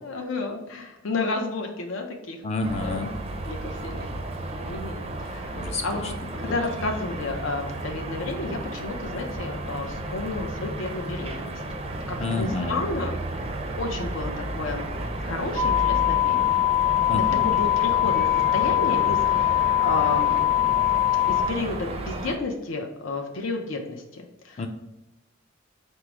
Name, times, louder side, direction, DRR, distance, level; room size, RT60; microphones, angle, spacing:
voice 1, 0.0-2.4 2.8-3.0 3.4-4.1 4.7-11.6 12.1-13.2 13.8-14.9 15.2-16.4 17.4-18.3 18.5-20.4 21.3-24.7, left 3 dB, 75° left, 2 dB, 0.6 m, -31 dB
voice 2, 2.4-3.1 5.6-6.0 6.5-6.6 12.2-12.8 17.1-17.4 24.6-24.7, left 3 dB, 35° left, 5 dB, 0.4 m, -29 dB
sound 1, 2.6-22.4, right 2 dB, 30° right, 0.4 m, -33 dB
sound 2, 15.6-21.4, left 14 dB, 50° left, 1.1 m, -22 dB
4.6 x 2.0 x 4.7 m, 0.96 s
head